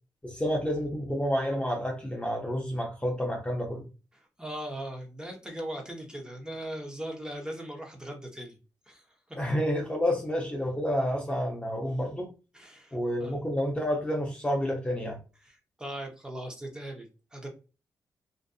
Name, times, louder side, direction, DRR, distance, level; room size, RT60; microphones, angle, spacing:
voice 1, 0.2-3.8 9.4-12.3 12.9-15.2, equal, 15° left, 0 dB, 0.7 m, -29 dB
voice 2, 4.1-8.6 8.9-9.4 12.5-13.4 15.4-17.5, right 1 dB, 10° right, 1 dB, 0.8 m, -39 dB
2.6 x 2.4 x 2.3 m, 0.32 s
cardioid pair, 70°, 7 cm